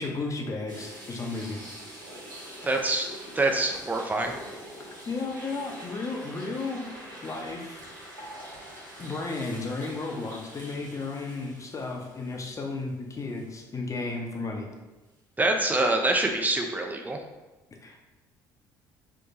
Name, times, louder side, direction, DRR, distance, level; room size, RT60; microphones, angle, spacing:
voice 1, 0.0-1.6 2.9-3.0 5.1-6.9 7.2-7.8 9.0-14.7 17.8-18.0, left 3 dB, 30° left, 1 dB, 0.7 m, -33 dB
sound 1, 0.7-12.9 13.3-13.4 15.8-15.9, right 1 dB, 85° right, 0.7 m, -45 dB
voice 2, 2.6-3.1 3.4-4.3 15.4-17.2, right 2 dB, 15° right, 3 dB, 0.6 m, -25 dB
4.4 x 2.2 x 2.7 m, 1.1 s
figure-of-eight pair, 50°, 10 cm